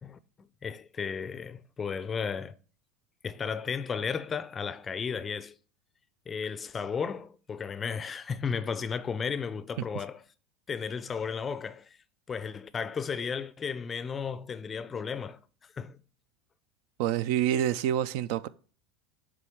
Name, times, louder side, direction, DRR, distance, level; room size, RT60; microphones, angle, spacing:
voice 1, 0.0-2.6 3.2-5.5 6.3-10.2 10.7-12.0 12.3-15.4 15.8-16.0, left 6 dB, 30° left, 0.4 m, -34 dB
voice 2, 17.0-18.5, right 11 dB, 65° right, 0.3 m, -27 dB
7.5 x 3.1 x 4.6 m
hypercardioid pair, 80°, 0 cm